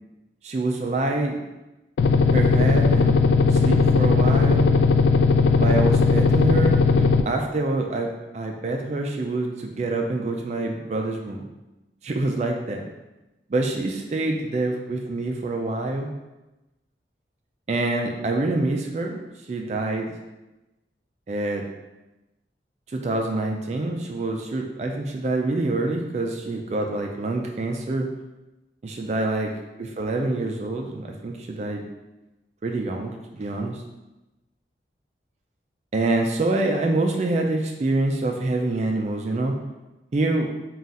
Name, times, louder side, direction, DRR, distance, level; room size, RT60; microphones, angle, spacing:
voice 1, 0.4-1.4 2.3-3.2 3.5-4.7 5.6-11.5 12.0-12.8 13.5-16.1 17.7-19.2 19.5-20.1 21.3-21.6 22.9-28.1 28.8-29.5 29.8-31.9 32.6-33.8 35.9-39.5 40.1-40.5, right 2 dB, 40° right, 2 dB, 0.3 m, -26 dB
sound 1, 2.0-7.2, left 4 dB, 85° left, 0.3 m, -18 dB
3.7 x 2.3 x 4.0 m, 1.0 s
head